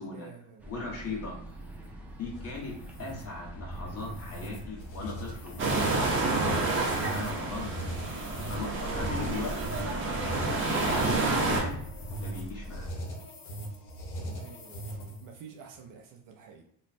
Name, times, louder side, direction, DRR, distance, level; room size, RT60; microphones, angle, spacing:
voice 1, 0.1-0.7 1.0-1.1 14.1-16.6, right 6 dB, 45° right, 2 dB, 0.6 m, -49 dB
sound 1, 0.6-12.9, equal, 5° right, 0.4 m, -44 dB
voice 2, 0.7-1.3 2.1-2.7 3.0-6.7 7.1-8.1 8.5-9.6 9.8-11.8 12.2-12.9, left 3 dB, 30° left, -3 dB, 1.4 m, -39 dB
sound 2, 1.5-15.4, right 1 dB, 65° left, 1.2 m, -40 dB
sound 3, 5.6-11.6, right 3 dB, 25° right, 1.0 m, -29 dB
3.1 x 2.4 x 4.2 m, 0.70 s
cardioid pair, 125°, 45 cm